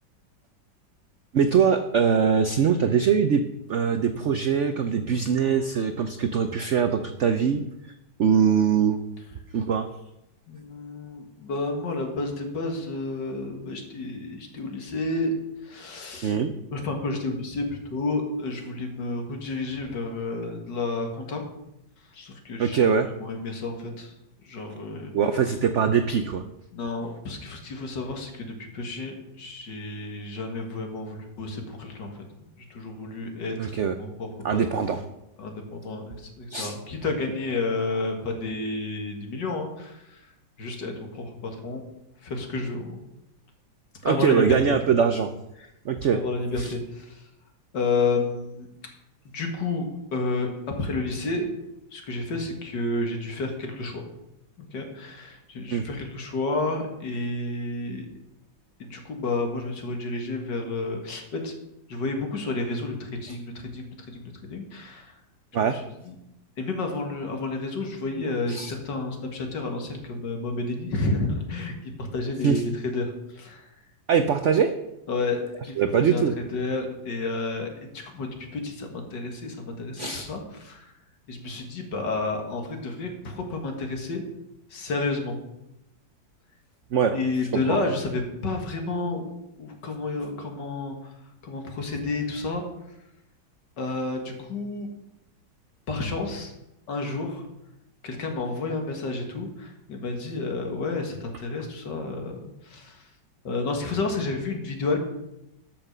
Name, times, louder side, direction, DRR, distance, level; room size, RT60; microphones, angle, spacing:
voice 1, 1.3-3.4 3.7-7.6 8.2-9.0 9.5-9.9 16.2-16.5 22.6-23.1 25.1-26.4 33.6-33.9 34.4-35.0 36.5-36.8 44.0-45.3 45.8-46.2 46.6-46.7 55.7-55.8 65.5-65.8 68.5-68.7 72.4-72.6 74.1-74.7 75.8-76.3 80.0-80.3 86.9-87.2 87.7-87.8, right 7 dB, 90° right, 9 dB, 0.6 m, -22 dB
voice 2, 10.5-15.3 15.6-16.3 16.7-21.4 22.1-24.1 24.4-25.1 26.7-32.1 32.6-35.0 35.4-40.2 40.6-41.8 42.2-43.0 44.0-44.6 46.1-47.2 47.7-48.7 49.3-51.5 51.9-54.1 54.6-58.1 58.8-61.5 61.9-65.1 65.6-66.2 66.6-71.7 72.0-73.7 75.1-75.4 75.7-80.9 81.3-84.2 84.7-85.4 87.1-89.2 89.6-91.1 91.4-92.6 93.8-94.9 95.9-96.5 96.9-97.5 98.0-103.0 103.4-105.0, left 3 dB, 65° left, 3 dB, 2.4 m, -31 dB
12.5 x 6.0 x 6.6 m, 0.87 s
omnidirectional pair, 2.1 m